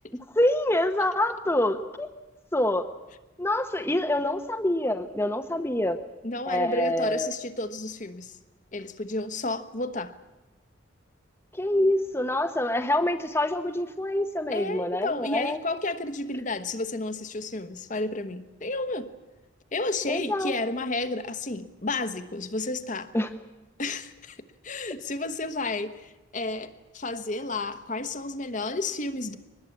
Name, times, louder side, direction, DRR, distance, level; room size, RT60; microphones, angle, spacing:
voice 1, 0.3-2.1 2.5-2.9 3.4-6.0 6.5-7.3 11.5-15.6 20.1-20.5 23.1-23.3, left 1 dB, 10° left, 0.9 m, -26 dB
voice 2, 6.2-8.4 8.7-10.1 14.5-19.1 19.7-23.2 23.8-24.4 24.6-29.4, left 2 dB, 40° left, 1.2 m, -31 dB
23.0 x 20.5 x 8.6 m
head